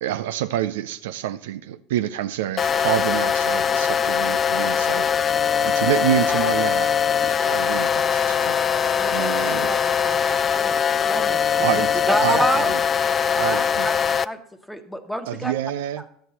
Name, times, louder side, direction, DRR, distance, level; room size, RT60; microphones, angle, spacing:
voice 1, 0.0-6.9 7.2-8.6 9.0-9.7 11.6-12.8 13.4-13.9 15.3-16.0, right 12 dB, 80° right, 11 dB, 0.4 m, -27 dB
sound 1, 2.6-14.2, left 7 dB, 35° left, 0.3 m, -21 dB
voice 2, 9.0-12.5, right 4 dB, 25° right, 7 dB, 0.6 m, -34 dB
voice 3, 12.1-12.7 13.3-14.4 14.7-15.5 16.0-16.1, equal, 5° left, 7 dB, 1.3 m, -26 dB
11.5 x 7.7 x 4.2 m, 0.66 s
hypercardioid pair, 75°, 0 cm